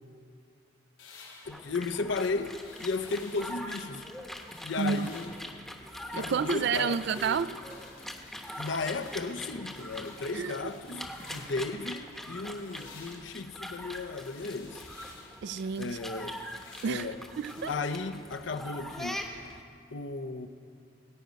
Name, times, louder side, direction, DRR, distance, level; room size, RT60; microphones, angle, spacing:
sound 1, 1.0-3.7 4.1-5.5 5.9-11.8 12.1-17.7, left 4 dB, 80° left, 4.2 m, -54 dB
sound 2, 1.4-19.6, equal, ahead, 0.9 m, -43 dB
voice 1, 1.5-2.5 2.8-4.0 4.6-5.3 6.1-7.0 8.6-14.8 15.8-16.4 16.8-17.2 17.7-19.2 19.9-20.5, left 3 dB, 65° left, 10 dB, 0.7 m, -34 dB
voice 2, 4.8-5.1 6.1-7.6 10.3-10.6 10.9-11.1 15.4-16.0 16.8-17.1 17.4-17.7, right 6 dB, 60° right, 14 dB, 0.3 m, -30 dB
19.5 x 9.2 x 5.2 m, 2.3 s
head